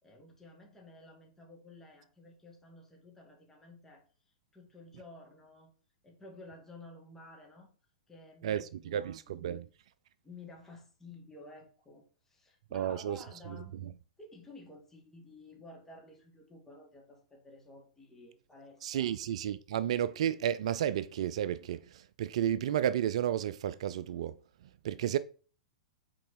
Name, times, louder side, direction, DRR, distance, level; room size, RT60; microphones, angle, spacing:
voice 1, 0.0-5.7 6.0-7.7 8.1-9.4 10.2-19.1, left 2 dB, 10° left, 2.4 m, -53 dB
voice 2, 8.4-9.7 12.7-13.2 18.8-24.4 24.8-25.2, right 10 dB, 60° right, 0.4 m, -32 dB
6.2 x 4.4 x 4.7 m
hypercardioid pair, 110°, 4 cm